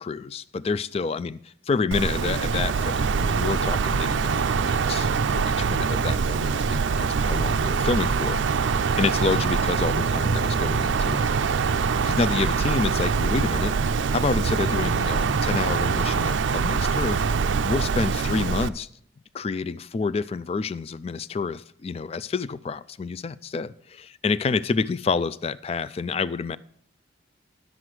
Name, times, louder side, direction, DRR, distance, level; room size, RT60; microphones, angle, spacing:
voice 1, 0.0-11.3 12.0-13.7 14.1-17.2 17.6-18.9 19.3-26.6, left 4 dB, 30° left, 17 dB, 0.3 m, -28 dB
Wind, 1.9-18.7, right 5 dB, 75° right, 0.4 m, -24 dB
11.0 x 7.7 x 4.7 m, 0.65 s
head